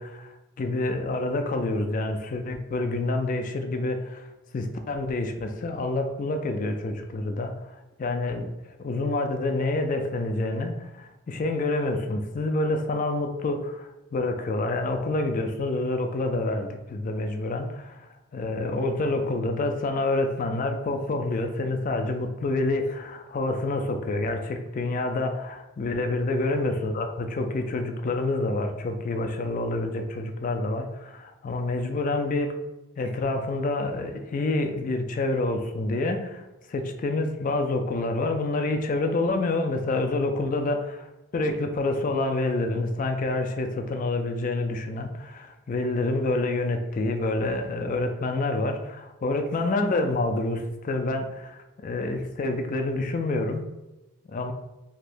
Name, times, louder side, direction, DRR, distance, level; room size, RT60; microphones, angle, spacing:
voice 1, 0.0-4.3 4.5-7.6 8.0-32.5 33.0-40.8 41.3-53.7 54.3-54.5, left 2 dB, 40° left, 5 dB, 0.3 m, -27 dB
3.4 x 2.8 x 2.5 m, 1.0 s
head